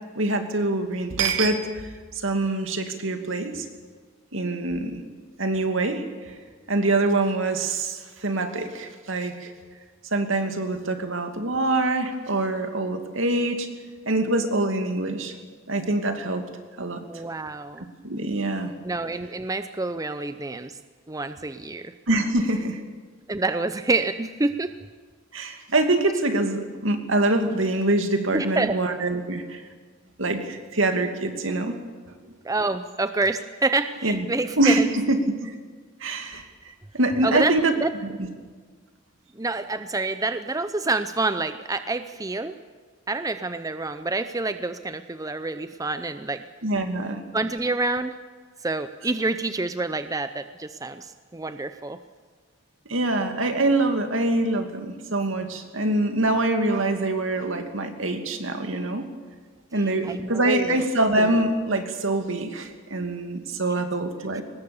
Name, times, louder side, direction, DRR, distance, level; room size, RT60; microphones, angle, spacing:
voice 1, 0.2-1.9 2.1-3.7 4.3-5.0 5.4-6.4 6.7-9.5 10.1-13.7 14.1-15.3 15.7-16.4 16.8-17.0 17.8-18.7 22.1-22.8 25.3-29.6 30.2-31.8 32.1-32.2 34.0-34.2 34.6-35.5 36.0-36.5 36.9-37.7 38.2-38.3 46.6-47.2 52.9-59.0 59.7-64.4, right 2 dB, 75° right, 6 dB, 2.5 m, -24 dB
voice 2, 17.1-17.8 18.8-20.8 21.1-21.9 23.3-24.7 28.3-28.8 32.4-34.9 37.2-37.9 39.4-42.5 43.1-46.4 47.3-48.1 48.6-52.0 59.8-60.7, right 3 dB, 15° right, 10 dB, 0.6 m, -27 dB
23.0 x 19.5 x 7.2 m, 1.5 s
head